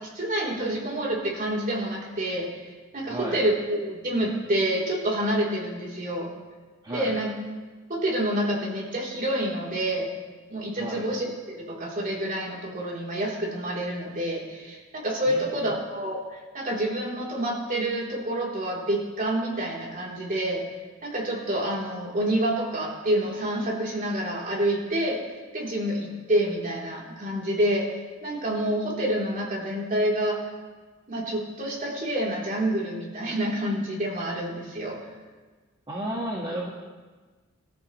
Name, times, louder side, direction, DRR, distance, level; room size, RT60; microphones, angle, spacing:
voice 1, 0.0-2.5 2.9-6.3 6.9-7.3 7.9-10.1 10.5-20.6 21.0-25.2 25.5-27.9 28.2-30.4 31.1-35.0, right 1 dB, 40° right, -3 dB, 3.5 m, -28 dB
voice 2, 3.1-3.4 6.8-7.2 10.8-11.1 15.3-15.7 35.9-36.7, right 1 dB, 25° right, -4 dB, 1.7 m, -33 dB
25.5 x 13.5 x 3.2 m, 1.3 s
head